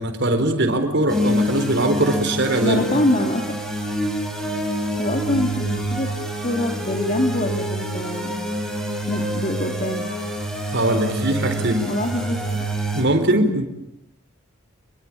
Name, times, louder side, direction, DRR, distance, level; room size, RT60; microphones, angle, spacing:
voice 1, 0.0-2.8 10.7-11.9 12.9-13.6, right 1 dB, 55° right, 7 dB, 4.3 m, -21 dB
sound 1, 1.1-13.0, equal, 5° left, 6.5 m, -26 dB
voice 2, 2.6-3.5 4.8-6.1 6.4-8.4 9.1-10.0 11.9-12.4, left 1 dB, 35° left, 4 dB, 2.3 m, -24 dB
29.5 x 23.0 x 8.8 m, 0.79 s
head